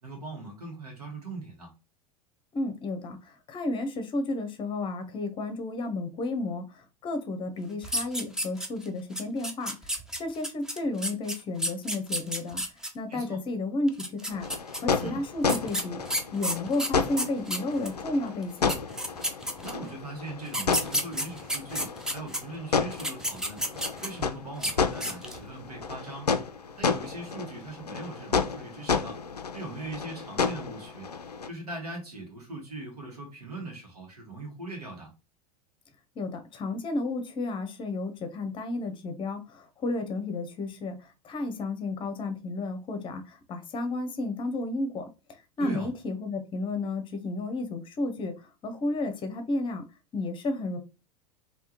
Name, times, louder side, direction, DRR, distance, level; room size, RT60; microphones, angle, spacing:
voice 1, 0.0-1.7 13.1-13.4 15.0-15.2 19.6-23.7 24.0-26.3 26.8-29.2 29.5-31.1 31.5-35.1 45.6-45.9, right 2 dB, 75° right, 1.5 m, -40 dB
voice 2, 2.5-12.6 12.9-14.5 14.8-16.0 16.3-18.7 36.2-45.1 45.6-49.8 50.1-50.8, left 2 dB, 25° left, 0.7 m, -32 dB
sound 1, 7.8-8.9 9.2-12.9 13.9-14.8 15.5-18.0 18.4-18.5 18.7-19.9 20.5-22.4 22.9-24.2 24.6-24.7 25.0-25.4, equal, 5° right, 0.5 m, -31 dB
sound 2, 14.3-31.5, left 5 dB, 85° left, 0.4 m, -32 dB
3.5 x 2.7 x 2.9 m
figure-of-eight pair, 85°, 20 cm